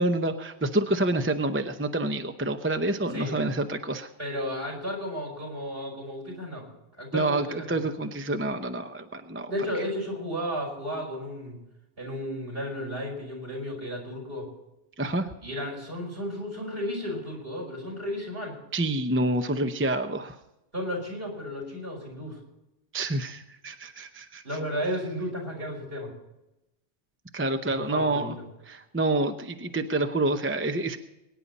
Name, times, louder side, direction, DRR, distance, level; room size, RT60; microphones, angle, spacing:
voice 1, 0.0-4.1 7.1-9.5 15.0-15.3 18.7-20.3 22.9-24.4 27.3-28.4 28.7-31.0, right 2 dB, 15° right, 7 dB, 0.7 m, -27 dB
voice 2, 4.2-6.7 7.0-7.8 9.5-11.6 12.0-14.5 15.4-18.6 20.7-22.4 24.4-26.1 27.8-28.3, equal, 60° right, -1 dB, 5.4 m, -33 dB
23.5 x 9.9 x 4.1 m, 0.94 s
omnidirectional pair, 1.1 m